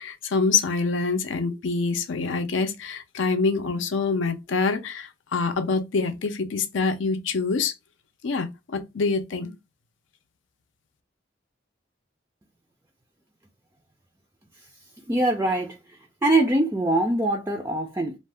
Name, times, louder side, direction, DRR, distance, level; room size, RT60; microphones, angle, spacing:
voice 1, 0.0-7.7 8.2-9.5, left 4 dB, 75° left, 0.5 m, -25 dB
voice 2, 15.1-15.8 16.2-18.1, right 2 dB, 15° right, 0.3 m, -23 dB
2.6 x 2.1 x 3.2 m
head